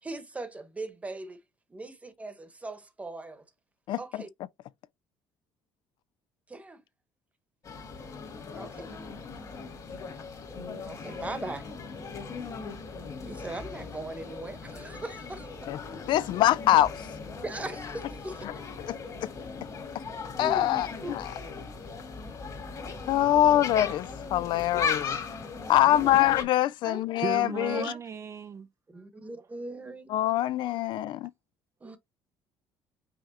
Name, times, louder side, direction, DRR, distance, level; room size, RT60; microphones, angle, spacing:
voice 1, 0.0-1.4 1.7-3.4 4.0-4.3 6.5-6.8 8.6-8.9 10.9-11.7 13.3-15.7 17.4-18.5 20.4-20.7 21.0-21.2 23.5-23.6 24.6-24.7 25.8-26.2 26.8-27.0 27.3-28.0 28.9-30.1 31.8-32.0, right 2 dB, 15° right, 1.1 m, -39 dB
sound 1, 7.6-26.4, left 5 dB, 40° left, 1.7 m, -38 dB
voice 2, 16.1-16.9 18.9-19.3 20.4-21.3 23.1-25.2 25.7-27.9 30.1-31.3, left 13 dB, 65° left, 0.4 m, -24 dB
voice 3, 27.2-28.7 31.8-32.0, right 6 dB, 35° right, 0.4 m, -36 dB
5.6 x 3.4 x 2.8 m
cardioid pair, 120°, 9 cm